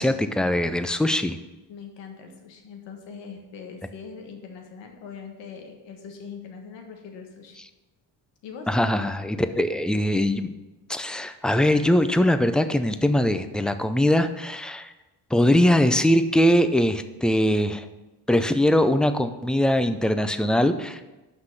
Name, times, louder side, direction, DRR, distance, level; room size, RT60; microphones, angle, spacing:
voice 1, 0.0-1.4 8.7-10.5 10.9-14.9 15.3-17.8 18.3-21.0, left 1 dB, ahead, 10 dB, 0.4 m, -21 dB
voice 2, 1.7-7.6 8.4-8.7, left 6 dB, 85° left, 3 dB, 1.5 m, -41 dB
6.0 x 5.8 x 6.6 m, 1.1 s
cardioid pair, 95°, 42 cm